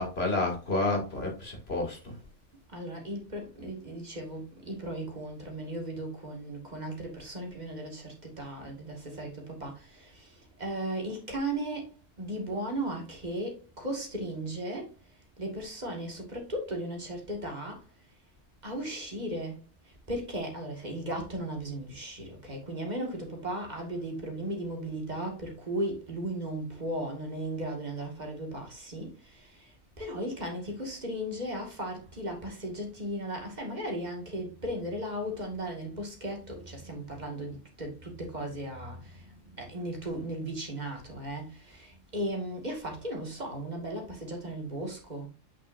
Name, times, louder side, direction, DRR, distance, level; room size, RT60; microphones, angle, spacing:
voice 1, 0.0-2.2, left 2 dB, 55° left, 3.0 m, -30 dB
voice 2, 2.7-11.9 12.2-14.9 15.4-17.8 18.6-19.6 20.1-29.7 30.0-45.3, right 1 dB, 35° right, 2.3 m, -36 dB
8.3 x 6.0 x 2.7 m
omnidirectional pair, 1.3 m